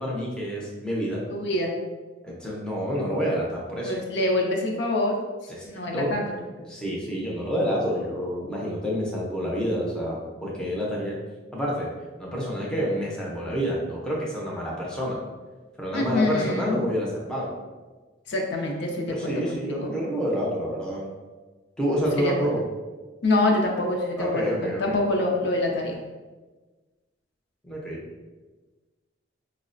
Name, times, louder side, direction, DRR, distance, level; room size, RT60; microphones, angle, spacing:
voice 1, 0.0-1.2 2.2-3.9 5.5-5.6 5.9-6.1 6.7-11.2 11.5-11.9 12.2-15.2 15.8-17.5 19.1-21.0 21.8-22.6 24.2-25.0 27.6-28.0, equal, 5° left, -4 dB, 0.5 m, -28 dB
voice 2, 1.3-1.7 3.8-5.2 5.7-6.3 15.9-16.8 18.3-19.9 22.2-22.3 23.2-26.0, left 2 dB, 65° left, 1 dB, 0.5 m, -25 dB
4.6 x 2.1 x 2.5 m, 1.3 s
head